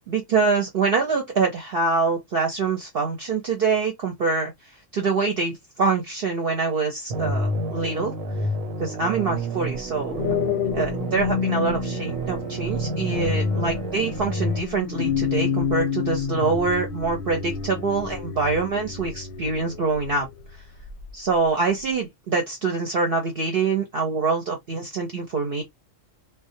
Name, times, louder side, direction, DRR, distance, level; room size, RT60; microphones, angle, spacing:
voice 1, 0.1-4.5 4.9-8.1 8.8-10.4 10.7-20.3 21.1-25.6, right 4 dB, 55° right, 0.7 m, -25 dB
sound 1, 7.1-14.6, right 1 dB, 90° right, 1.0 m, -29 dB
sound 2, 9.7-20.3 20.8-21.1, left 7 dB, 65° left, 0.7 m, -29 dB
2.3 x 2.1 x 2.6 m
omnidirectional pair, 1.4 m